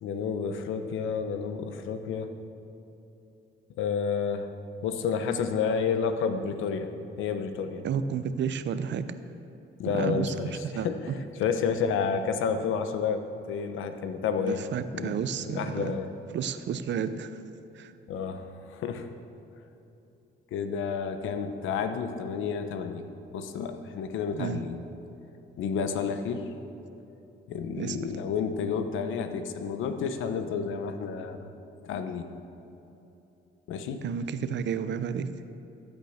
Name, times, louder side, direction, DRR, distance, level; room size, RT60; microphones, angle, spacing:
voice 1, 0.0-2.3 3.8-4.5 4.8-6.9 7.2-7.8 9.8-11.1 11.4-14.6 14.9-16.1 18.1-19.1 20.5-23.0 23.3-24.8 25.6-26.5 27.5-31.5 31.8-32.3 33.7-34.1, left 6 dB, 85° left, 9 dB, 1.0 m, -30 dB
voice 2, 7.8-9.1 9.9-10.3 10.6-10.9 14.4-15.9 16.3-17.4 17.7-17.9 24.3-24.6 27.8-28.0 34.0-35.3, right 7 dB, 65° right, 12 dB, 0.8 m, -31 dB
14.5 x 9.1 x 6.6 m, 2.9 s
cardioid pair, 90°, 20 cm